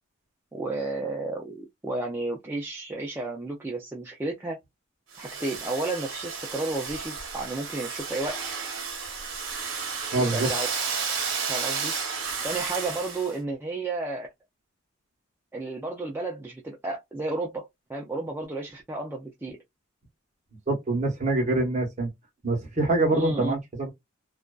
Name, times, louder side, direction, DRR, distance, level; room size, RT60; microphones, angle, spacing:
voice 1, 0.5-4.6 5.2-8.4 10.1-10.7 11.4-11.9 12.4-14.3 15.5-19.6 23.1-23.6, right 2 dB, 10° right, 0.3 m, -32 dB
Domestic sounds home sounds, 5.1-13.4, right 5 dB, 60° right, 0.9 m, -32 dB
voice 2, 10.1-10.5 20.7-22.1 22.4-23.9, right 2 dB, 35° right, 0.9 m, -25 dB
2.4 x 2.2 x 2.2 m
head